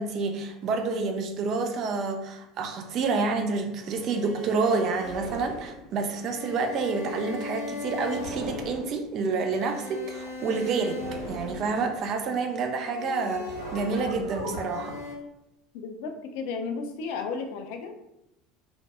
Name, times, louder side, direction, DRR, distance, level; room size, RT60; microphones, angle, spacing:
voice 1, 0.0-11.0 11.3-14.9, right 4 dB, 45° right, 5 dB, 0.4 m, -28 dB
sound 1, 3.8-12.3 12.8-15.1, left 1 dB, 85° right, 1.3 m, -38 dB
voice 2, 15.7-18.0, left 5 dB, 60° left, 6 dB, 0.3 m, -34 dB
2.5 x 2.1 x 2.6 m, 0.86 s
figure-of-eight pair, 70°, 0 cm